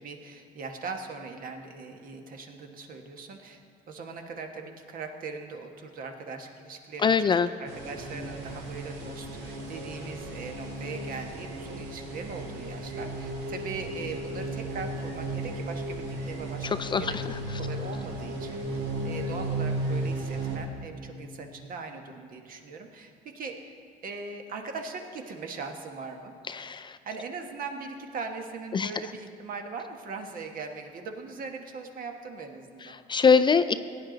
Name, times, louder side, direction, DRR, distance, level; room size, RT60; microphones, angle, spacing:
voice 1, 0.0-3.6 3.9-17.2 17.6-23.7 24.0-26.3 27.0-32.9, right 4 dB, 55° right, 4 dB, 1.3 m, -40 dB
voice 2, 7.0-7.5 16.8-17.1 26.5-26.9 28.7-28.9 33.1-33.7, left 5 dB, 30° left, 12 dB, 0.4 m, -22 dB
sound 1, 7.7-20.6, right 1 dB, 90° right, 2.3 m, -35 dB
17.5 x 9.4 x 3.9 m, 2.6 s
cardioid pair, 110°, 17 cm